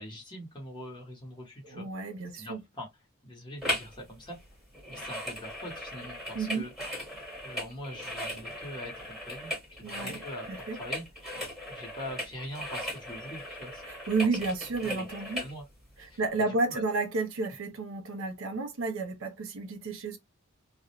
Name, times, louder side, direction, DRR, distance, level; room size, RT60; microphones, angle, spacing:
voice 1, 0.0-1.9 2.3-2.9 3.2-4.4 4.9-6.7 7.4-11.0 11.7-13.8 14.8-15.1 15.4-15.6 16.0-16.2 16.7-16.8, equal, 20° left, 0.9 m, -43 dB
voice 2, 1.7-2.6 6.3-6.7 9.8-10.2 10.5-10.8 13.9-15.4 16.0-20.2, right 3 dB, 70° right, 0.5 m, -31 dB
sound 1, 3.6-4.0 4.2-15.5 16.1-16.2, left 1 dB, ahead, 1.2 m, -38 dB
2.3 x 2.0 x 2.8 m
head